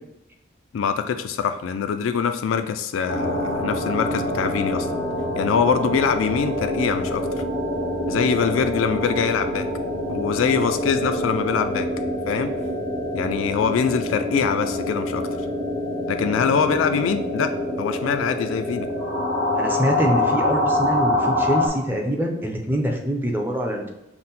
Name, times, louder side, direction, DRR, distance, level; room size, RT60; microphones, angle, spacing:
voice 1, 0.7-4.9 5.4-7.4 8.1-9.7 10.1-11.9 12.3-12.5 13.1-15.3 16.1-17.5 17.8-18.9, left 6 dB, 90° left, 9 dB, 0.3 m, -23 dB
sound 1, 3.1-21.7, left 1 dB, 80° right, 1.2 m, -25 dB
voice 2, 19.6-23.9, equal, 10° right, 1 dB, 0.5 m, -24 dB
5.7 x 2.1 x 3.9 m, 0.93 s
head